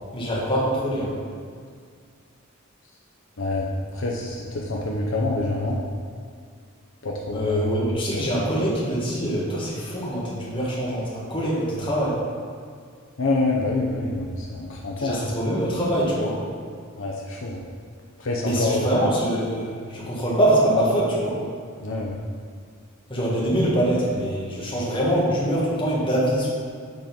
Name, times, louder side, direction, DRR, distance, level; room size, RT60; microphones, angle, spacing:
voice 1, 0.1-1.1 7.3-12.2 15.0-16.4 18.4-21.4 23.1-26.5, equal, 25° left, -6 dB, 1.5 m, -24 dB
voice 2, 3.4-5.8 7.0-7.6 8.1-8.3 13.2-15.2 17.0-17.6 18.2-18.9 21.8-22.2, left 2 dB, 60° left, -2 dB, 0.7 m, -26 dB
7.0 x 3.8 x 5.2 m, 2.1 s
head